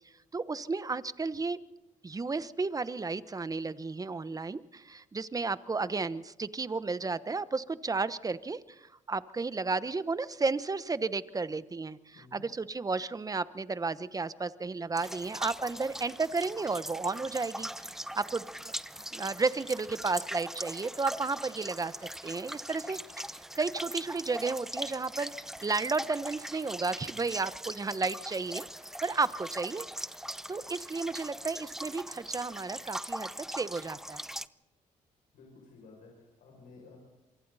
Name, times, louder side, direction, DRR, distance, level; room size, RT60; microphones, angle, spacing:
voice 1, 0.3-1.6 2.0-17.7 18.1-18.7 19.1-21.9 22.2-23.0 23.6-25.3 25.6-28.7 29.0-29.9 30.5-34.2, right 4 dB, 25° right, 14 dB, 1.1 m, -33 dB
sound 1, 15.0-34.5, equal, 5° right, 0.7 m, -41 dB
voice 2, 35.3-37.0, left 4 dB, 85° left, -1 dB, 6.7 m, -54 dB
27.5 x 24.0 x 4.2 m, 0.99 s
cardioid pair, 80°, 14 cm